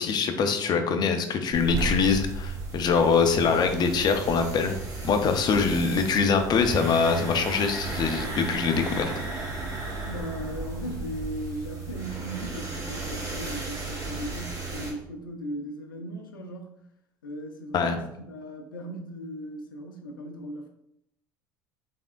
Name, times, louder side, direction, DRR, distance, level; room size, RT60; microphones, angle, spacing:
voice 1, 0.0-4.8 5.0-9.1 17.7-18.0, left 5 dB, 40° left, 7 dB, 0.6 m, -24 dB
sound 1, 1.5-14.9, right 3 dB, 30° right, 1.4 m, -34 dB
voice 2, 10.0-16.7 17.2-18.0 18.3-20.7, equal, 90° left, 4 dB, 0.5 m, -37 dB
3.5 x 3.5 x 2.4 m, 0.77 s
hypercardioid pair, 75°, 11 cm